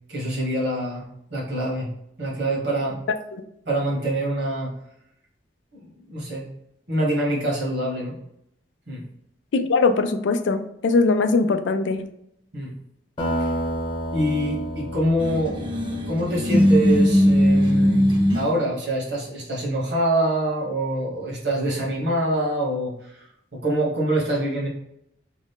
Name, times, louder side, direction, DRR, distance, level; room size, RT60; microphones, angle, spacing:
voice 1, 0.1-1.9 2.2-3.0 3.6-4.7 5.7-6.5 6.9-8.2 8.9-9.0 12.5-12.7 13.4-13.5 14.1-23.3 23.6-24.7, right 1 dB, 75° right, -4 dB, 1.4 m, -25 dB
voice 2, 9.5-12.1, left 3 dB, 80° left, 9 dB, 0.4 m, -21 dB
sound 1, 13.2-17.5, equal, 25° left, 1.0 m, -31 dB
sound 2, 15.2-18.5, equal, 30° right, 0.7 m, -19 dB
3.1 x 2.5 x 3.5 m, 0.76 s
head